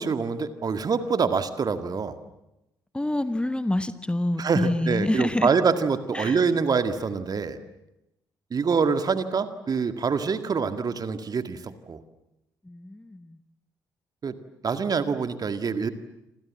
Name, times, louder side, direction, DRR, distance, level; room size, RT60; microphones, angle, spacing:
voice 1, 0.0-2.2 4.4-7.6 8.5-12.0 14.2-14.4 14.6-15.9, right 5 dB, 40° right, 10 dB, 2.0 m, -25 dB
voice 2, 2.9-5.5 6.1-6.4 12.6-13.4, left 1 dB, 10° left, 13 dB, 1.2 m, -27 dB
28.0 x 27.0 x 7.5 m, 0.90 s
figure-of-eight pair, 40°, 10 cm